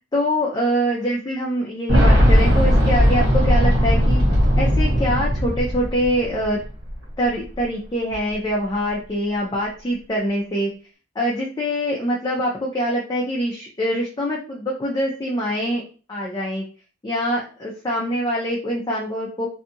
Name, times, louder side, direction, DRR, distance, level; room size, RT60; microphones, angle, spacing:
voice 1, 0.0-4.2 4.6-6.6 7.2-10.7 11.2-15.8 16.1-16.6 17.0-19.5, equal, 20° left, -3 dB, 0.4 m, -24 dB
Boom, 1.9-6.6 6.9-7.0 8.1-8.2, equal, 60° right, 1.0 m, -17 dB
2.7 x 2.3 x 2.6 m, 0.37 s
head